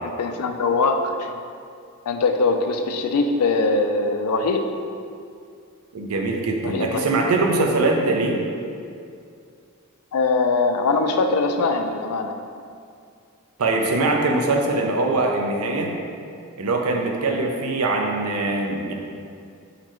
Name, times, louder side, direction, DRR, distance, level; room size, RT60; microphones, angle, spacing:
voice 1, 0.0-1.3 2.1-4.7 6.6-7.1 10.1-12.4, left 3 dB, 80° left, 6 dB, 0.4 m, -22 dB
voice 2, 5.9-8.4 13.6-16.0 16.6-18.9, right 2 dB, 75° right, 2 dB, 0.5 m, -22 dB
4.2 x 4.0 x 3.0 m, 2.4 s
head